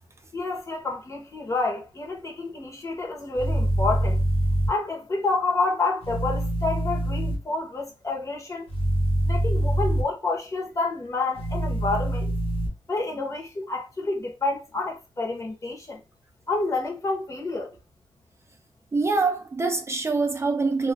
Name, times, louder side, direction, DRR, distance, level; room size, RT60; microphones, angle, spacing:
voice 1, 0.3-4.2 4.7-8.7 9.2-12.3 12.9-16.0 16.5-17.7, left 3 dB, 35° left, 0.8 m, -29 dB
sound 1, 3.4-4.7 6.0-7.4 8.7-10.0 11.4-12.7, right 1 dB, 85° left, 0.9 m, -24 dB
voice 2, 18.9-20.9, right 3 dB, 30° right, 0.3 m, -24 dB
2.3 x 2.2 x 3.2 m
wide cardioid pair, 105°, 9 cm